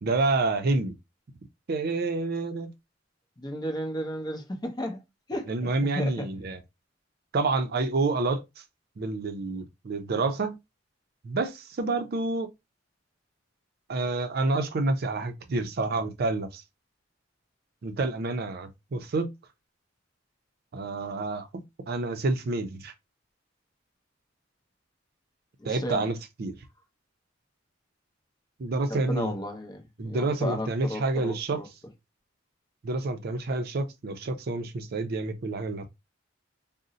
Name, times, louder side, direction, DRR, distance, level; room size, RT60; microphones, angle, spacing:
voice 1, 0.0-0.9 1.7-2.7 5.5-6.6 7.3-8.6 9.0-10.6 11.2-12.5 13.9-16.6 17.8-19.3 20.7-22.9 25.6-26.6 28.6-29.3 30.0-31.6 32.8-35.8, right 3 dB, 55° right, 0.5 m, -28 dB
voice 2, 3.4-5.0 5.3-6.3 25.7-26.1 28.9-31.7, equal, 20° left, 0.6 m, -34 dB
2.5 x 2.0 x 3.8 m
head